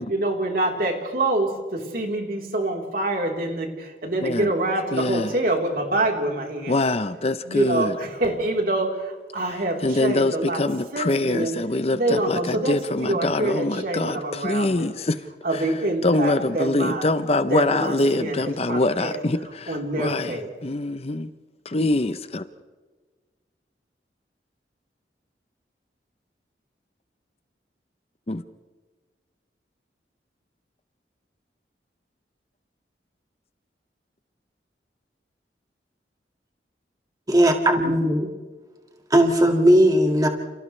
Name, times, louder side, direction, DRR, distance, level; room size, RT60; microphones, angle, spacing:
voice 1, 0.1-6.8 7.5-10.6 10.9-11.5 11.9-14.9 15.4-17.1 17.5-19.2 19.7-20.5, right 2 dB, 55° right, 1 dB, 3.9 m, -26 dB
voice 2, 4.2-4.5 4.9-5.3 6.7-7.9 9.8-15.2 15.5-15.6 16.0-20.3 20.6-21.3 21.7-22.4 28.3-28.4, left 2 dB, 35° left, 11 dB, 0.7 m, -24 dB
voice 3, 37.3-38.3 39.1-40.3, equal, 20° right, 3 dB, 2.1 m, -17 dB
29.5 x 29.5 x 3.3 m, 1.4 s
head